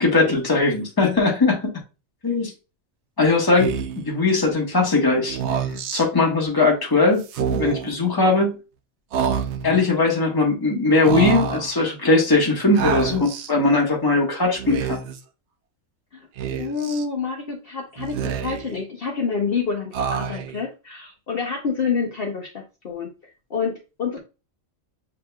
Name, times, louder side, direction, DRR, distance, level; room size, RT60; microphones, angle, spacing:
voice 1, 0.0-1.7 2.2-2.5 3.2-5.4 5.9-7.2 7.5-8.6 9.6-15.0, left 3 dB, 20° left, 1.1 m, -19 dB
Speech, 3.6-4.1 5.3-6.0 7.2-7.9 9.1-9.8 11.0-11.7 12.8-13.5 14.5-15.2 16.4-17.0 18.0-18.8 19.9-20.6, right 7 dB, 65° right, 0.8 m, -27 dB
voice 2, 16.6-23.1 23.5-24.2, left 5 dB, 55° left, 0.9 m, -27 dB
7.3 x 2.9 x 2.2 m
omnidirectional pair, 1.3 m